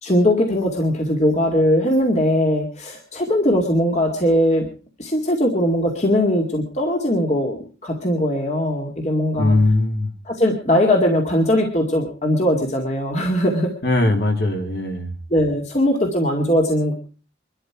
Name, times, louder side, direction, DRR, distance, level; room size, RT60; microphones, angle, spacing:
voice 1, 0.0-4.7 5.0-9.6 10.2-13.7 15.3-16.9, equal, 35° left, 2 dB, 2.4 m, -20 dB
voice 2, 9.4-10.1 13.8-15.1, left 2 dB, 55° left, 3 dB, 3.6 m, -19 dB
23.5 x 13.0 x 4.8 m, 0.39 s
head